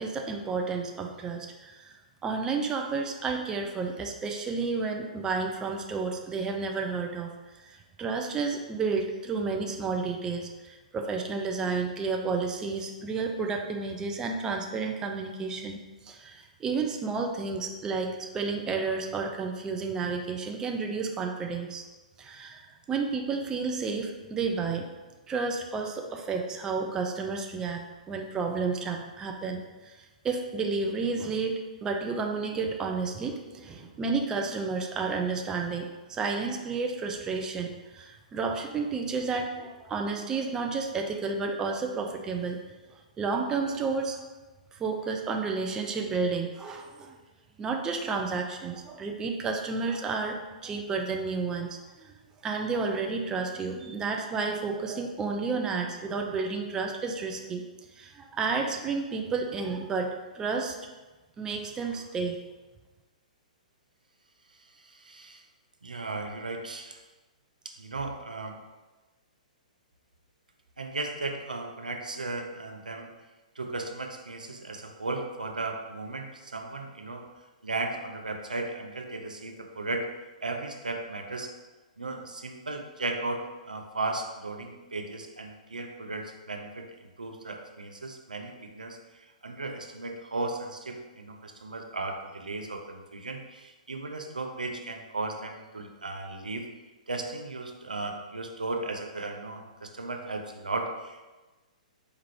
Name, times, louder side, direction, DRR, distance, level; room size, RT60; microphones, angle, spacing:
voice 1, 0.0-7.3 7.6-21.8 22.2-24.9 25.3-42.6 43.2-44.2 44.7-47.2 47.6-52.1 52.4-57.6 58.0-60.8 61.4-62.4, right 4 dB, 15° right, 3 dB, 0.3 m, -31 dB
voice 2, 64.8-65.4 65.8-67.0 67.6-68.6 70.8-73.1 73.6-77.2 77.6-80.1 80.4-81.5 82.0-86.9 87.2-96.7 97.1-101.2, right 2 dB, 80° right, 4 dB, 0.4 m, -36 dB
4.3 x 2.4 x 3.1 m, 1.2 s
figure-of-eight pair, 115°, 4 cm